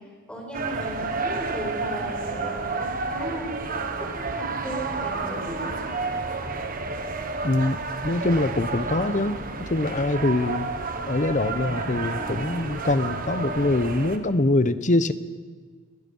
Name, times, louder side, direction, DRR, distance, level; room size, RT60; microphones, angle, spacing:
voice 1, 0.3-6.0, right 1 dB, 5° left, -2 dB, 6.0 m, -36 dB
sound 1, 0.5-14.2, right 3 dB, 45° right, 1.5 m, -31 dB
voice 2, 7.4-10.7 11.1-15.1, left 2 dB, 35° left, 13 dB, 0.9 m, -24 dB
28.0 x 21.0 x 5.5 m, 1.5 s
head